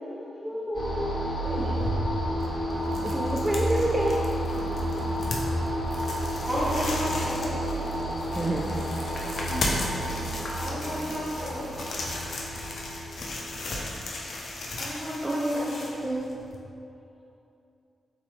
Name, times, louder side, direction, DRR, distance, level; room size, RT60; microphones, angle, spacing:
voice 1, 0.1-0.9 1.4-1.7 2.9-3.0 4.5-5.4 8.2-8.8 9.3-10.2 10.7-11.1, left 1 dB, 30° left, -6 dB, 1.0 m, -39 dB
sound 1, 0.7-14.9, equal, 45° left, 1.3 m, -31 dB
sound 2, 1.4-16.6, left 1 dB, 65° left, 0.5 m, -36 dB
voice 2, 3.1-4.2 8.4-8.7 15.2-16.3, right 1 dB, 20° right, -3 dB, 0.4 m, -27 dB
voice 3, 6.4-7.7 10.6-11.8 14.8-15.8, equal, ahead, -9 dB, 1.5 m, -32 dB
3.7 x 2.9 x 3.2 m, 2.7 s
supercardioid pair, 45°, 0 cm